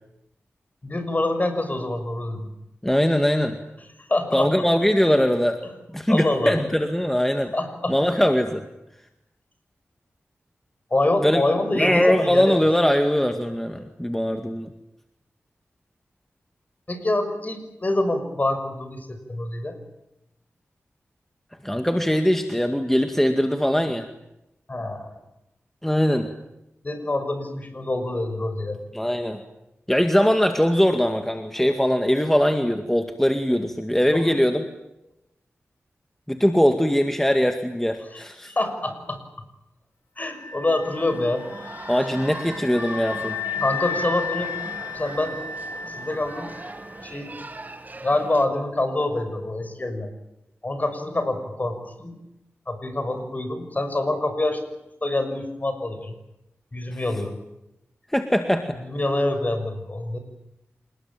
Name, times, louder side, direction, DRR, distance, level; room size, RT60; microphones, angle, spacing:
voice 1, 0.8-2.5 4.1-4.5 6.1-6.6 7.5-8.0 10.9-12.6 16.9-19.8 24.7-25.1 26.8-28.8 34.1-34.4 38.1-39.2 40.2-41.4 43.6-44.5 44.9-45.4 45.9-46.5 47.0-47.4 48.0-50.1 50.6-52.2 52.7-54.6 55.0-56.1 56.7-57.3 58.7-60.2, left 2 dB, 35° left, 8 dB, 6.2 m, -26 dB
voice 2, 2.8-3.6 4.3-5.6 5.9-7.5 7.9-8.6 11.2-11.4 11.7-14.7 21.6-24.1 25.8-26.3 28.9-29.4 29.9-34.6 36.3-38.5 41.9-43.4 56.9-57.0 58.1-58.8, equal, 5° left, 6 dB, 2.1 m, -21 dB
sound 1, 40.3-47.1, left 6 dB, 70° left, 7.5 m, -34 dB
sound 2, 40.8-48.5, right 2 dB, 40° right, 2.3 m, -39 dB
28.5 x 20.0 x 9.1 m, 0.88 s
wide cardioid pair, 70°, 5 cm